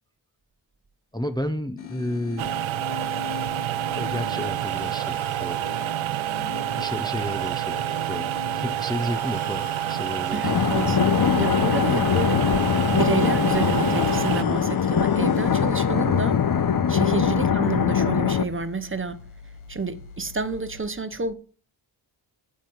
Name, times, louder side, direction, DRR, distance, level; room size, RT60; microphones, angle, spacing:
voice 1, 1.1-2.5 3.9-5.7 6.8-10.4, left 1 dB, 10° left, 0.8 m, -32 dB
sound 1, 1.8-20.8, left 8 dB, 85° left, 1.3 m, -41 dB
sound 2, 2.4-14.4, right 13 dB, 75° right, 0.6 m, -28 dB
voice 2, 10.3-12.5 12.9-16.4 16.9-19.2 19.7-21.3, right 4 dB, 25° right, 1.0 m, -29 dB
sound 3, 10.4-18.4, left 7 dB, 45° left, 0.9 m, -22 dB
9.4 x 8.3 x 4.7 m
cardioid pair, 65°, 47 cm